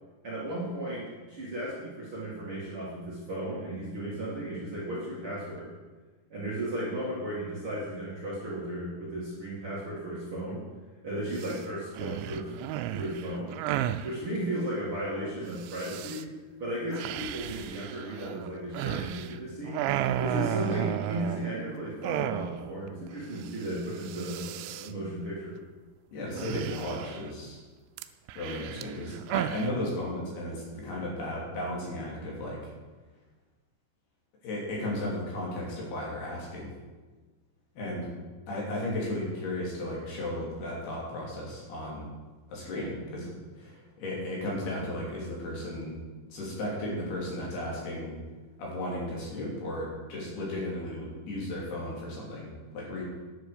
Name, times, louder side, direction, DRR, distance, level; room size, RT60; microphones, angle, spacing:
voice 1, 0.2-5.7 6.3-10.6 11.0-12.5 12.9-13.6 14.0-16.3 16.6-19.8 20.2-25.6, right 1 dB, 40° right, -7 dB, 2.2 m, -35 dB
sound 1, 11.3-11.6 12.0-14.1 15.6-16.2 16.9-19.4 19.7-21.6 22.0-22.8 23.1-23.2 23.4-23.7 24.0-24.9 26.4-27.3 28.0-29.7, right 12 dB, 85° right, 2.9 m, -33 dB
voice 2, 26.1-27.6 28.4-32.7 34.4-36.7 37.8-38.1 38.5-42.1 42.5-46.0 46.3-48.2 48.6-53.0, left 1 dB, 65° left, -3 dB, 4.8 m, -35 dB
10.5 x 7.8 x 6.8 m, 1.3 s
omnidirectional pair, 5.1 m